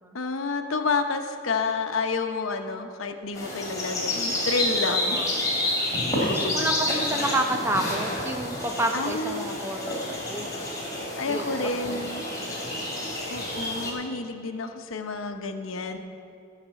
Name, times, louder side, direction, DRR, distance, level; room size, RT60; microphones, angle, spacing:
voice 1, 0.1-5.2 6.2-6.5 8.9-9.6 11.2-12.2 13.3-16.0, left 3 dB, 85° left, 6 dB, 0.9 m, -29 dB
sound 1, 3.4-13.9, left 1 dB, 15° left, 2.9 m, -29 dB
voice 2, 4.8-5.3 6.1-10.5 11.3-12.0, right 1 dB, 10° right, 3 dB, 0.8 m, -30 dB
14.5 x 5.9 x 7.5 m, 2.6 s
head